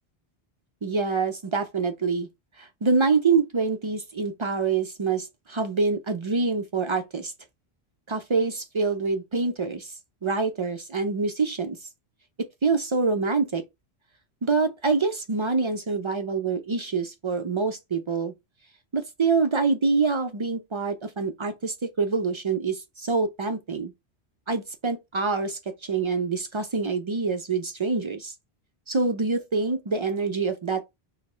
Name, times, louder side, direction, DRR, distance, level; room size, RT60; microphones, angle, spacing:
voice 1, 0.8-2.3 2.6-7.3 8.1-9.9 10.2-11.8 12.4-13.6 14.4-18.3 18.9-23.9 24.5-28.3 28.9-30.8, right 4 dB, 45° right, 0.4 m, -26 dB
4.4 x 2.1 x 4.4 m
omnidirectional pair, 1.1 m